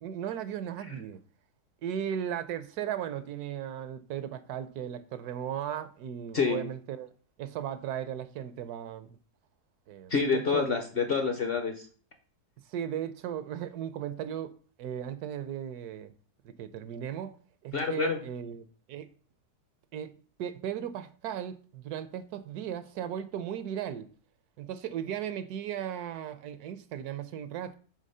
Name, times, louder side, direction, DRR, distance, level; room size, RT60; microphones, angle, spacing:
voice 1, 0.0-1.2 1.8-7.1 7.4-9.2 9.9-10.7 12.7-16.1 16.6-17.3 17.6-19.1 19.9-24.1 24.6-27.8, right 9 dB, 75° right, 1.1 m, -36 dB
voice 2, 10.1-11.9 17.7-18.2, left 5 dB, 50° left, 0.8 m, -27 dB
6.4 x 3.8 x 5.4 m
omnidirectional pair, 1.7 m